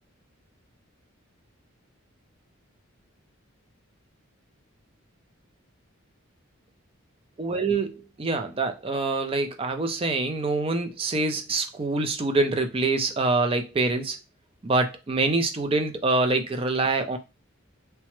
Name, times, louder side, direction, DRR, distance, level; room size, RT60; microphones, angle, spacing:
voice 1, 7.4-14.2 14.6-17.2, right 3 dB, 25° right, 0.4 m, -25 dB
3.2 x 2.0 x 3.0 m
head